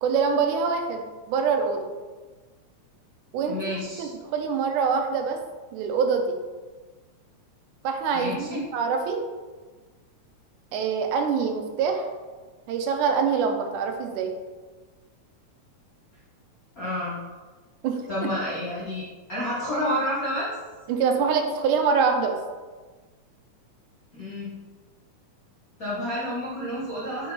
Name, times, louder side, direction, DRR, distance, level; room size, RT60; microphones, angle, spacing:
voice 1, 0.0-1.8 3.3-3.6 4.0-5.4 5.7-6.4 7.8-9.2 10.7-12.1 12.7-14.3 17.8-18.0 20.9-22.4, right 5 dB, 90° right, 4 dB, 2.2 m, -24 dB
voice 2, 3.3-4.1 8.1-8.6 16.8-17.2 18.1-20.5 24.1-24.5 25.8-27.3, left 1 dB, 55° left, -9 dB, 1.0 m, -30 dB
6.3 x 4.6 x 3.9 m, 1.3 s
omnidirectional pair, 3.5 m